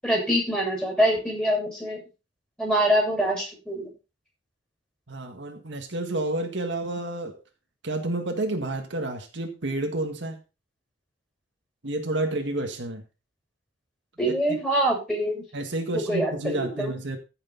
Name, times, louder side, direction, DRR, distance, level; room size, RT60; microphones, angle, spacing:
voice 1, 0.0-2.0 2.6-3.9 14.2-15.4 15.9-16.9, equal, 5° left, 7.4 m, -25 dB
voice 2, 5.1-7.4 7.8-10.4 11.8-13.0 14.2-14.6 15.5-17.2, right 2 dB, 70° right, 1.8 m, -30 dB
15.0 x 6.9 x 4.0 m
head